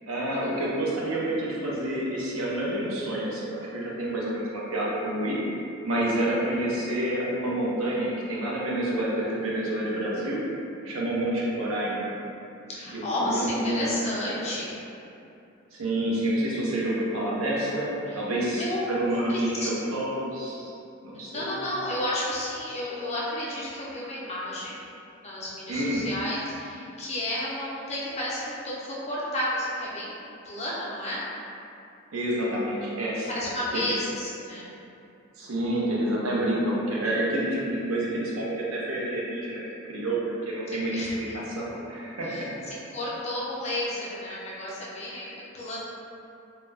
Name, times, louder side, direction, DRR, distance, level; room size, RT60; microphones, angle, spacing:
voice 1, 0.1-5.4 5.8-10.4 10.8-12.1 12.9-13.9 14.3-14.5 15.7-20.7 21.0-21.7 25.7-26.0 32.1-33.3 33.7-33.8 35.4-39.6 39.9-42.5, right 1 dB, 90° right, -5 dB, 0.6 m, -28 dB
voice 2, 12.7-14.8 18.1-18.2 18.6-18.8 19.3-20.0 21.3-24.8 25.2-31.2 32.4-32.5 33.3-34.7 40.9-41.3 42.2-45.8, left 1 dB, 35° left, -7 dB, 0.5 m, -32 dB
2.2 x 2.0 x 3.2 m, 2.7 s
head